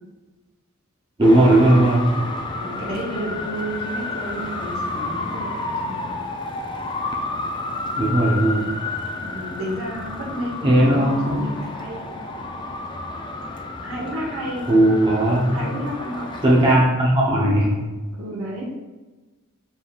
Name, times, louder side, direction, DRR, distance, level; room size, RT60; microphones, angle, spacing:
Traffic noise roadway noise, 1.2-16.8, left 2 dB, 20° left, 0.3 m, -31 dB
voice 1, 1.2-2.2 8.0-8.8 10.6-11.5 14.7-15.7 16.4-17.9, right 1 dB, 25° right, -4 dB, 0.7 m, -17 dB
voice 2, 2.6-6.1 9.2-12.3 13.8-14.7 15.5-16.4 18.1-18.8, equal, 80° right, -3 dB, 1.3 m, -31 dB
5.3 x 3.5 x 2.4 m, 1.2 s
head